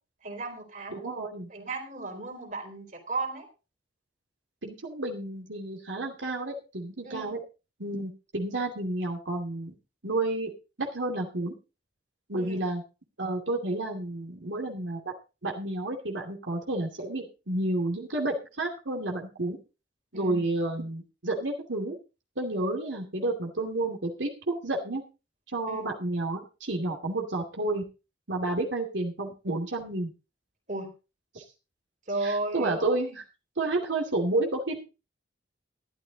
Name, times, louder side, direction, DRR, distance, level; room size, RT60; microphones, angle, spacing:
voice 1, 0.2-1.2 1.5-3.5 7.0-7.4 12.4-12.6 20.1-20.4 25.7-25.9 30.7-30.9 32.1-33.2, right 2 dB, 45° right, 4 dB, 3.9 m, -35 dB
voice 2, 0.9-1.5 4.6-7.4 7.8-9.7 10.0-10.5 10.8-11.5 12.3-12.8 13.2-15.1 15.4-19.6 20.1-22.0 22.4-25.0 25.5-27.9 28.3-30.1 31.3-31.4 32.2-33.2 33.6-34.8, right 2 dB, 85° right, 1 dB, 2.5 m, -30 dB
13.0 x 12.0 x 3.9 m, 0.31 s
head